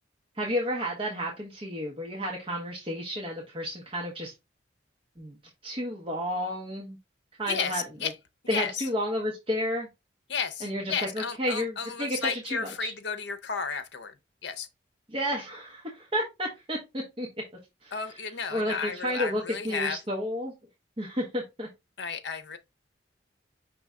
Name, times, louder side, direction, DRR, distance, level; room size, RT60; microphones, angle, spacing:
voice 1, 0.4-4.3 5.2-5.4 5.6-7.0 7.4-8.1 8.5-9.9 10.6-12.9 15.1-17.3 17.8-18.2 18.5-20.5 21.0-21.7, equal, 30° right, 0.9 m, -31 dB
voice 2, 7.5-8.1 8.5-8.8 10.3-14.1 14.4-14.7 17.9-20.0 22.0-22.6, left 6 dB, 70° left, 0.7 m, -33 dB
5.4 x 2.8 x 3.6 m
head